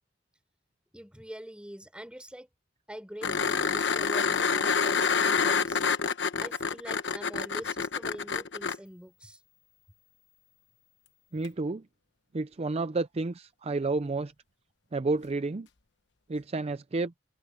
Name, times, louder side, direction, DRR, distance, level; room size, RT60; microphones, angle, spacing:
voice 1, 0.9-2.5 2.9-5.8 6.4-9.4, equal, 5° right, 4.3 m, -44 dB
sound 1, 3.2-8.8 11.4-11.5, left 5 dB, 65° left, 1.2 m, -27 dB
voice 2, 11.3-11.9 12.3-14.3 14.9-15.7 16.3-17.1, right 3 dB, 35° right, 0.5 m, -30 dB
open air
head